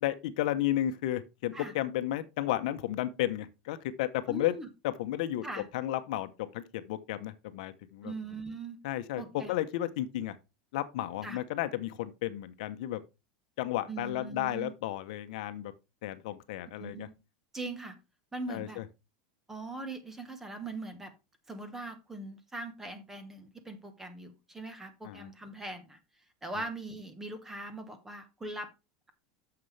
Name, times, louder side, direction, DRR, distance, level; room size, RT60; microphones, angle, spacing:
voice 1, 0.0-4.5 4.8-5.4 5.7-8.1 8.8-10.4 10.7-13.0 13.6-15.7 16.0-17.1 18.5-18.7 25.0-25.3, left 13 dB, 65° left, 0.9 m, -33 dB
voice 2, 4.3-4.7 5.4-5.7 8.0-8.8 9.2-9.5 11.2-11.4 13.9-14.7 16.7-17.1 17.5-17.9 18.3-18.8 19.5-21.1 21.5-26.0 26.4-28.7, right 2 dB, 10° right, 1.2 m, -41 dB
9.4 x 6.8 x 3.3 m
supercardioid pair, 165°, 4 cm